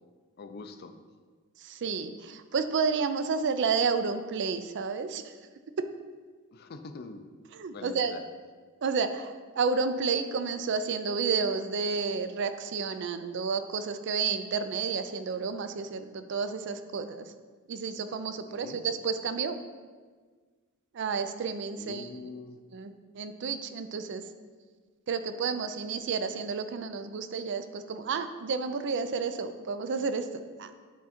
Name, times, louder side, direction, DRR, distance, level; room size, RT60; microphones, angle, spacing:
voice 1, 0.4-0.9 6.5-7.3 7.7-8.2 18.5-18.8 21.8-22.6, left 3 dB, 45° left, 8 dB, 0.4 m, -44 dB
voice 2, 1.6-5.3 5.8-5.9 7.6-8.1 8.8-17.2 17.7-19.6 20.9-22.1 22.7-24.2 25.1-30.3 30.6-30.7, right 5 dB, 55° right, 10 dB, 0.4 m, -31 dB
8.3 x 3.7 x 4.3 m, 1.5 s
head